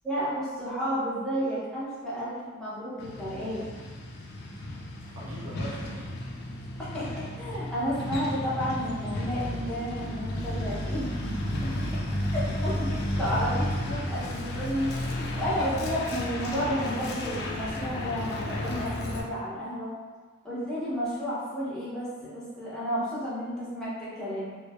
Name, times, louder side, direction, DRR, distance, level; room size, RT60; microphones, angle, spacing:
voice 1, 0.0-3.7 6.8-11.1 11.6-12.0 12.3-19.9 20.4-24.6, equal, 5° left, -11 dB, 0.6 m, -32 dB
Truck, 3.0-19.2, left 1 dB, 45° left, 0.3 m, -33 dB
voice 2, 4.5-6.8, equal, 55° right, -9 dB, 0.5 m, -45 dB
3.0 x 2.0 x 2.2 m, 1.5 s
head